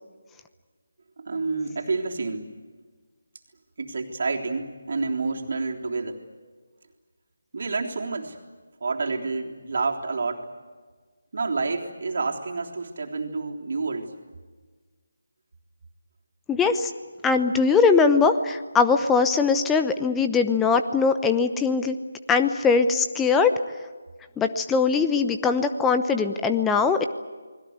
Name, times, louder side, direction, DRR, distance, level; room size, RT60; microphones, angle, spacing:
voice 1, 1.2-2.5 3.8-6.2 7.5-8.4 8.8-10.5 11.3-14.2, right 3 dB, 50° right, 1 dB, 3.5 m, -29 dB
voice 2, 16.5-16.9 17.2-22.0 22.3-23.6 24.4-27.1, left 5 dB, 5° left, 8 dB, 0.9 m, -21 dB
29.5 x 21.0 x 8.0 m, 1.4 s
figure-of-eight pair, 155°, 0 cm